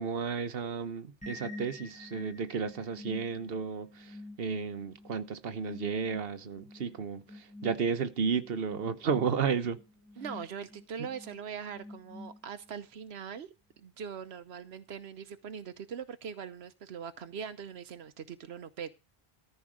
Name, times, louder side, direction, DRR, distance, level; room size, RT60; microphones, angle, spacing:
voice 1, 0.0-9.8, right 6 dB, 65° right, 1.3 m, -33 dB
sound 1, 1.2-12.8, left 2 dB, 5° left, 6.4 m, -49 dB
voice 2, 10.2-18.9, right 7 dB, 90° right, 1.1 m, -42 dB
14.0 x 5.5 x 6.2 m
omnidirectional pair, 1.0 m